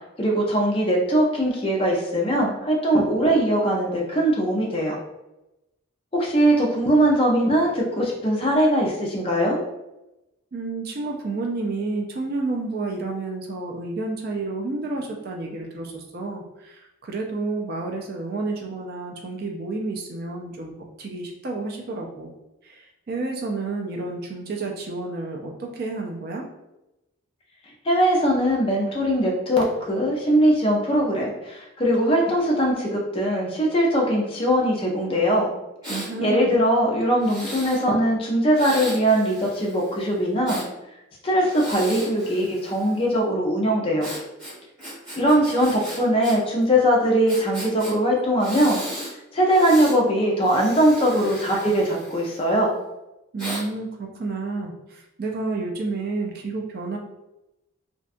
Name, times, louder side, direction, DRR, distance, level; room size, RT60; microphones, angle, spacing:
voice 1, 0.2-5.0 6.1-9.6 27.8-35.5 35.9-40.6 41.2-44.1 45.2-48.8 49.3-52.7, equal, 25° left, -2 dB, 0.5 m, -21 dB
voice 2, 10.5-22.3 22.6-26.4 35.9-36.6 53.3-57.0, right 3 dB, 45° right, 1 dB, 0.3 m, -30 dB
Breathing, 35.8-36.1 37.2-37.8 38.5-40.7 41.4-43.1 44.0-46.4 46.6-46.7 47.3-47.9 48.4-49.1 49.5-50.0 50.4-52.6 53.4-53.6, equal, 20° right, 1.4 m, -36 dB
2.6 x 2.2 x 2.5 m, 0.93 s
head